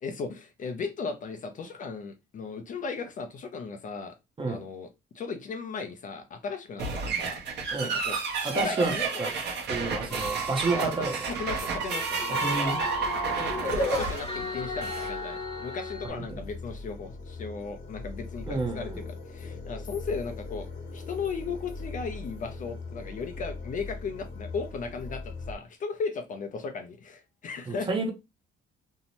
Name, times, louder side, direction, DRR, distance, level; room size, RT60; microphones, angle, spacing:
voice 1, 0.0-4.2 4.5-4.9 5.1-7.4 7.8-9.1 10.0-10.2 10.7-10.9 11.3-12.2 13.3-18.9 19.3-20.7 20.9-27.9, left 5 dB, 40° left, 0.4 m, -36 dB
sound 1, 6.8-15.1, right 4 dB, 55° right, 0.8 m, -32 dB
voice 2, 8.4-9.3 9.7-11.3 12.3-12.8 16.3-16.4 18.5-19.0 27.7-28.1, right 3 dB, 25° right, 0.6 m, -30 dB
sound 2, 9.4-25.6, left 3 dB, 60° left, 1.0 m, -42 dB
sound 3, 10.1-16.1, equal, 25° left, 0.8 m, -33 dB
2.6 x 2.1 x 2.8 m
cardioid pair, 135°, 21 cm